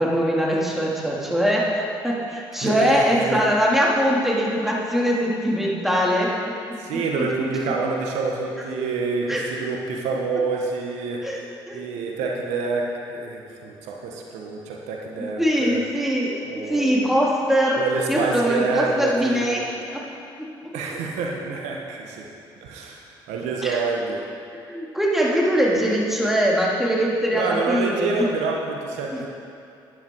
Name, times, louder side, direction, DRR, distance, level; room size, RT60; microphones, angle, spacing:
voice 1, 0.0-6.3 6.9-7.5 8.6-8.7 9.3-9.4 11.2-11.8 15.2-20.0 20.4-20.8 23.6-23.8 24.7-28.1 29.1-29.2, equal, 5° right, -4 dB, 3.1 m, -22 dB
voice 2, 2.6-3.4 6.8-11.2 11.7-15.8 16.5-17.0 17.8-19.7 20.7-22.3 22.6-24.3 27.3-29.3, right 4 dB, 75° right, 0 dB, 1.3 m, -27 dB
12.0 x 10.0 x 4.7 m, 2.5 s
hypercardioid pair, 50°, 12 cm